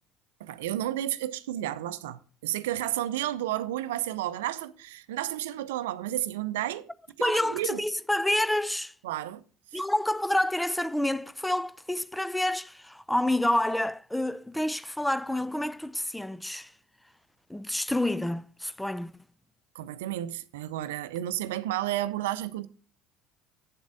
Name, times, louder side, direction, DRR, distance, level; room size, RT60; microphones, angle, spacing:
voice 1, 0.4-6.9 7.2-7.8 9.0-9.4 9.7-9.8 19.7-22.7, right 13 dB, 75° right, 0.6 m, -32 dB
voice 2, 7.2-8.9 9.7-16.7 17.5-19.1, left 1 dB, 5° left, 0.5 m, -28 dB
9.6 x 7.3 x 4.8 m
figure-of-eight pair, 65°, 0 cm